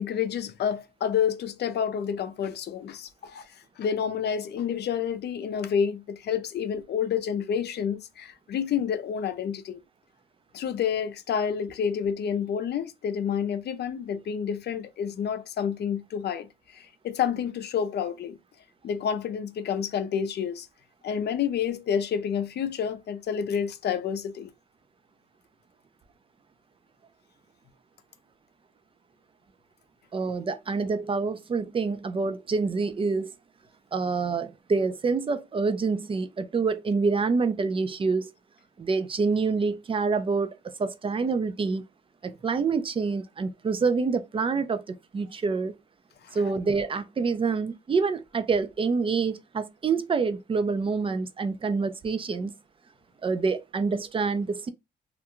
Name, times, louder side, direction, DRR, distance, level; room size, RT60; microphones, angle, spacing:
voice 1, 0.0-3.5 3.8-9.8 10.5-16.5 16.7-18.4 18.8-20.7 21.0-24.5, left 7 dB, 55° left, 0.5 m, -29 dB
voice 2, 30.1-33.3 33.9-38.3 38.8-40.5 40.8-41.8 42.2-45.8 46.3-52.5 53.2-54.7, right 4 dB, 25° right, 0.4 m, -27 dB
2.4 x 2.2 x 2.9 m
cardioid pair, 90°, 20 cm